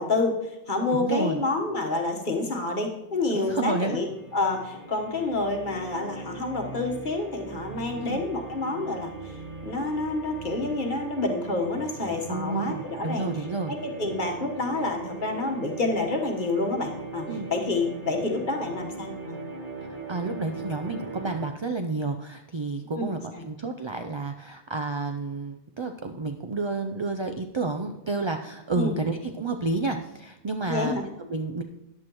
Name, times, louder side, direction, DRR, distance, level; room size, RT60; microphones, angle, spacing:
voice 1, 0.0-4.1 4.3-9.3 9.6-13.3 13.7-19.4 22.9-23.1 23.3-23.4 28.7-28.9 30.7-31.0, left 3 dB, 45° left, 2 dB, 1.4 m, -28 dB
voice 2, 0.9-1.4 3.3-4.0 8.0-8.2 12.3-13.7 17.3-17.5 20.1-31.6, right 3 dB, 45° right, 6 dB, 0.4 m, -30 dB
sound 1, 3.6-21.4, right 3 dB, 85° right, 2.1 m, -39 dB
14.0 x 9.8 x 3.0 m, 0.89 s
omnidirectional pair, 1.2 m